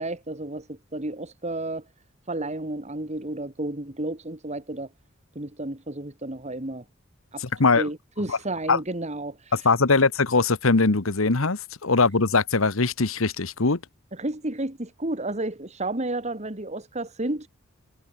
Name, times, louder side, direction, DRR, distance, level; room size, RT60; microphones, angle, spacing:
voice 1, 0.0-1.8 2.3-4.9 5.4-6.8 7.3-7.4 7.8-9.4 14.1-17.5, right 2 dB, 35° right, 2.2 m, -31 dB
voice 2, 7.4-7.9 8.3-8.4 8.7-8.8 9.5-13.8, left 3 dB, 85° left, 1.4 m, -21 dB
head